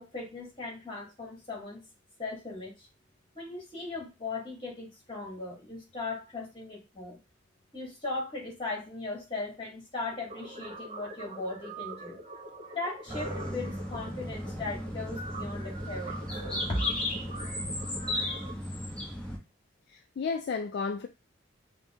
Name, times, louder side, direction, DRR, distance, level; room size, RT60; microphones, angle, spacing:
voice 1, 0.0-1.8 2.2-2.9 3.4-7.2 7.7-12.2 12.7-16.3 16.7-16.9 18.1-18.3, left 2 dB, 25° left, 1.8 m, -38 dB
sound 1, 10.3-18.5, right 2 dB, 30° right, 1.1 m, -43 dB
sound 2, 13.1-19.4, left 1 dB, 5° left, 1.0 m, -35 dB
voice 2, 19.9-21.1, left 5 dB, 55° left, 0.3 m, -33 dB
5.1 x 2.1 x 3.5 m
head